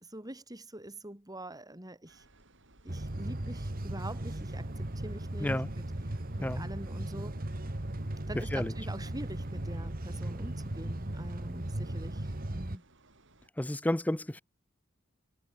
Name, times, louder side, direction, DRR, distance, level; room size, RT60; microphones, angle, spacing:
voice 1, 0.0-2.2 2.8-5.6 6.4-7.3 8.3-12.8, right 1 dB, 15° right, 3.2 m, -44 dB
sound 1, 2.1-13.5, right 2 dB, 60° right, 5.8 m, -63 dB
sound 2, 2.9-12.8, right 1 dB, 45° right, 1.8 m, -37 dB
voice 2, 8.4-8.7 13.6-14.4, left 1 dB, 5° left, 0.4 m, -31 dB
head